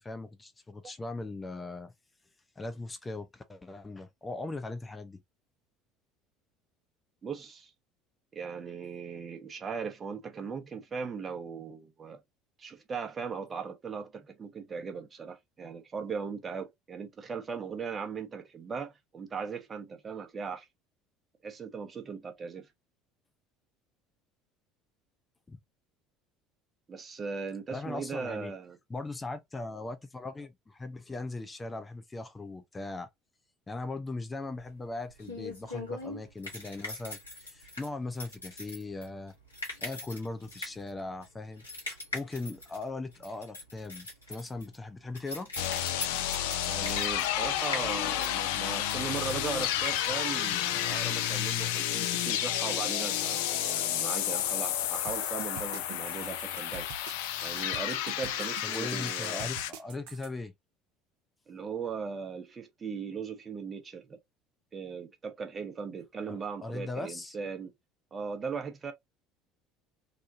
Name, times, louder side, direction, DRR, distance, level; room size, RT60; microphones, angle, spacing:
voice 1, 0.0-1.9 2.6-5.2 25.5-25.6 27.7-28.5 28.9-33.1 33.7-39.3 39.8-41.6 42.1-45.5 58.6-60.5 66.3-67.4, left 2 dB, 20° left, 0.6 m, -39 dB
voice 2, 7.2-7.7 8.3-12.2 12.6-20.7 21.4-22.7 26.9-28.8 46.7-56.9 57.4-59.5 61.5-64.2 64.7-67.7 68.1-68.9, right 5 dB, 30° right, 0.9 m, -38 dB
sound 1, 34.5-51.2, left 2 dB, 90° left, 1.0 m, -42 dB
sound 2, 45.6-59.7, left 11 dB, 65° left, 0.4 m, -31 dB
sound 3, 55.1-60.3, right 8 dB, 65° right, 0.4 m, -46 dB
3.0 x 2.2 x 2.6 m
figure-of-eight pair, 65°, 0 cm